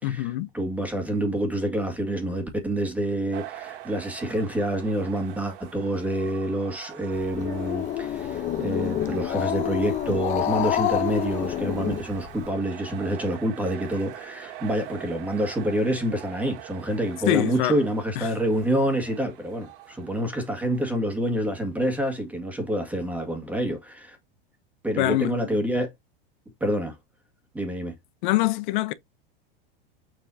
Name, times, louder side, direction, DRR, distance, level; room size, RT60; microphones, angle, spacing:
voice 1, 0.0-0.5 17.3-17.8 18.2-18.3 25.0-25.4 28.2-28.9, left 15 dB, 55° left, 1.0 m, -24 dB
voice 2, 0.5-24.2 24.8-25.9 26.6-27.0 27.5-28.0, right 1 dB, 5° right, 1.8 m, -27 dB
sound 1, 3.3-20.9, right 14 dB, 60° right, 2.1 m, -44 dB
Growling, 7.1-12.5, left 11 dB, 25° left, 0.7 m, -28 dB
7.2 x 5.4 x 2.8 m
supercardioid pair, 150°, 29 cm